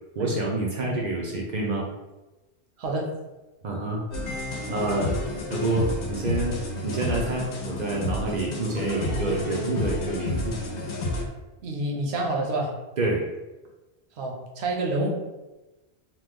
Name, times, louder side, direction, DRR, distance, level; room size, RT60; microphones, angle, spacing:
voice 1, 0.2-1.9 3.6-4.3 4.7-5.2 5.5-6.6 6.8-10.5 13.0-13.3, right 2 dB, 55° right, -2 dB, 0.5 m, -28 dB
voice 2, 2.8-3.1 11.6-12.7 14.2-15.1, right 2 dB, 70° right, -1 dB, 0.9 m, -28 dB
sound 1, 4.1-11.3, left 1 dB, 80° left, 0.9 m, -30 dB
3.0 x 2.1 x 3.4 m, 1.1 s
omnidirectional pair, 1.1 m